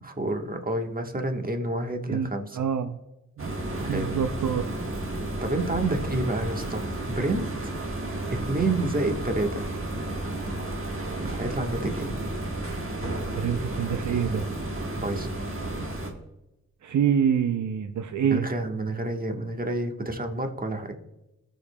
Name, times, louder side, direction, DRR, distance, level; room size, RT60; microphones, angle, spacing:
voice 1, 0.0-2.6 3.8-4.1 5.4-7.7 8.3-9.6 11.2-12.2 14.9-15.3 18.3-20.9, right 2 dB, 30° right, 4 dB, 1.3 m, -29 dB
voice 2, 2.1-3.0 3.4-3.5 3.9-4.7 13.4-14.5 16.8-18.5, right 8 dB, 80° right, 9 dB, 0.5 m, -26 dB
sound 1, 3.4-16.1, right 1 dB, 45° right, 1.5 m, -32 dB
15.5 x 5.2 x 2.2 m, 0.94 s
cardioid pair, 40°, 29 cm